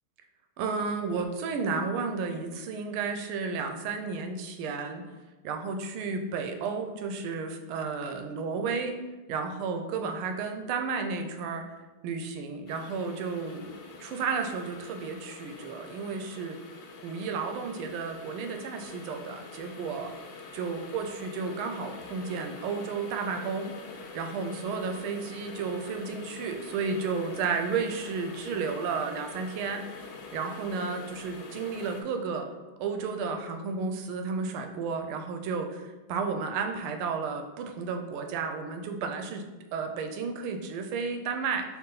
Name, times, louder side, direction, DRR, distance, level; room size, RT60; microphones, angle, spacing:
voice 1, 0.6-5.0 5.4-9.0 9.3-11.7 12.0-16.6 17.0-20.1 20.5-23.8 24.1-29.8 30.3-32.5 32.8-41.6, right 5 dB, 85° right, 5 dB, 1.5 m, -32 dB
sound 1, 12.7-32.0, left 4 dB, 80° left, 1.5 m, -45 dB
4.7 x 2.9 x 3.9 m, 1.1 s
omnidirectional pair, 2.3 m